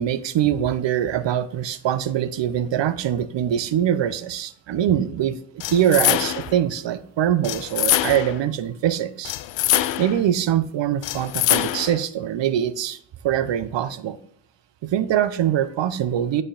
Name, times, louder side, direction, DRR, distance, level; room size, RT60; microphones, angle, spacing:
voice 1, 0.0-5.4 5.7-9.3 10.0-13.0 13.2-14.2 14.8-16.4, right 10 dB, 60° right, 13 dB, 0.6 m, -23 dB
sound 1, 5.6-6.6 7.4-8.4 9.2-10.2 11.0-12.0, left 13 dB, 65° left, 0.5 m, -23 dB
8.8 x 3.3 x 3.8 m, 0.64 s
supercardioid pair, 50°, 50 cm